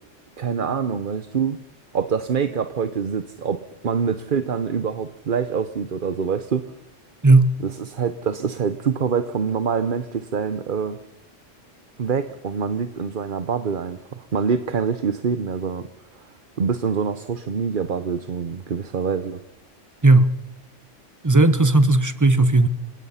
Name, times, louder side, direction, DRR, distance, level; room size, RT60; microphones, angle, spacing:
voice 1, 0.4-1.6 1.9-6.7 7.6-11.0 12.0-15.9 16.1-16.2 16.6-19.4, right 6 dB, 45° right, 11 dB, 1.0 m, -25 dB
voice 2, 7.2-7.6 20.0-20.3 21.2-22.7, right 2 dB, 15° right, 13 dB, 0.9 m, -15 dB
29.0 x 17.0 x 5.7 m, 0.93 s
omnidirectional pair, 1.3 m